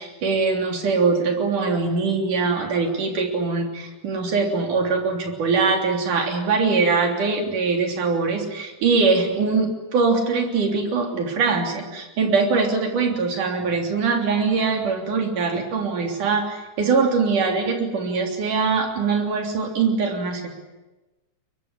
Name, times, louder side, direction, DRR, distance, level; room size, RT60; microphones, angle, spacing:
voice 1, 0.0-20.5, right 4 dB, 75° right, 3 dB, 4.8 m, -22 dB
23.0 x 22.0 x 9.9 m, 1.1 s
omnidirectional pair, 3.7 m